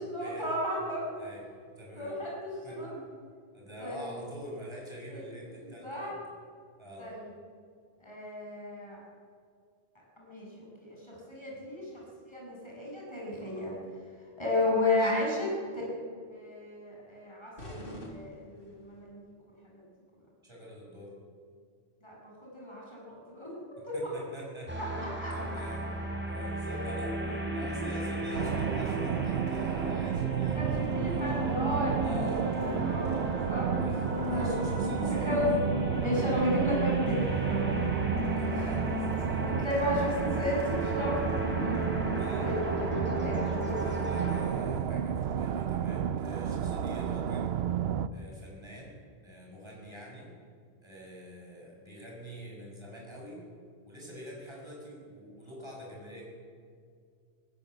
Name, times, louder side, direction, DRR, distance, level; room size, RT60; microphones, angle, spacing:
voice 1, 0.0-1.2 1.9-3.0 3.8-4.2 5.1-5.2 5.6-6.2 7.0-7.3 8.0-9.0 10.2-11.9 12.3-13.7 14.4-16.0 16.3-19.3 19.7-19.8 22.0-23.6 23.8-23.9 24.8-25.3 26.6-27.0 27.4-27.6 28.4-28.6 30.5-33.2 33.5-33.7 34.3-34.6 35.0-35.5 36.0-37.8 38.4-38.6 39.4-41.8 42.4-43.9, left 1 dB, 25° left, -4 dB, 6.9 m, -34 dB
voice 2, 1.8-2.1 2.6-2.8 3.5-6.1 6.8-7.1 11.5-11.6 20.4-21.1 23.8-24.8 25.3-25.9 26.2-27.3 27.5-31.3 32.0-32.5 33.7-35.6 38.2-39.5 42.2-42.5 43.7-47.6 48.1-50.3 50.8-53.4 53.8-56.3, equal, 25° right, -3 dB, 6.6 m, -46 dB
sound 1, 17.6-19.0, equal, 60° left, 3.4 m, -45 dB
sound 2, 24.7-44.4, equal, 10° right, 4.0 m, -34 dB
sound 3, 28.3-48.1, right 9 dB, 75° right, 0.9 m, -32 dB
18.5 x 17.5 x 7.9 m, 2.2 s
omnidirectional pair, 1.1 m